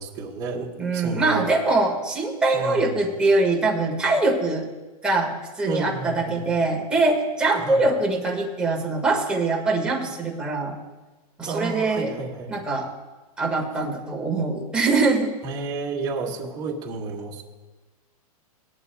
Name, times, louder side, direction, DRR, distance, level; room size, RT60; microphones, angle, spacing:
voice 1, 0.0-1.5 2.5-3.0 5.7-6.4 7.5-7.9 11.4-12.5 15.4-17.4, right 4 dB, 20° right, -3 dB, 1.6 m, -31 dB
voice 2, 0.8-4.7 5.0-10.8 11.4-12.2 12.5-12.9 13.4-15.3, right 3 dB, 5° right, -2 dB, 1.5 m, -23 dB
20.0 x 11.0 x 2.2 m, 1.2 s
supercardioid pair, 170°, 20 cm